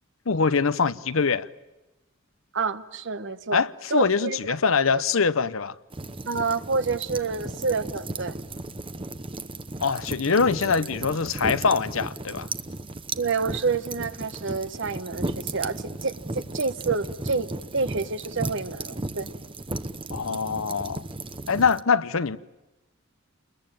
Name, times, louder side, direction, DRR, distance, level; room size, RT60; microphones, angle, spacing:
voice 1, 0.3-1.5 3.5-5.7 9.8-12.5 20.1-21.0 21.5-22.4, left 5 dB, 70° left, 0.8 m, -23 dB
voice 2, 2.5-3.6 3.9-4.4 4.9-5.0 6.3-8.4 13.1-19.3, right 4 dB, 60° right, 1.1 m, -28 dB
sound 1, 5.9-21.8, right 2 dB, 25° right, 0.9 m, -35 dB
29.0 x 21.5 x 8.9 m
head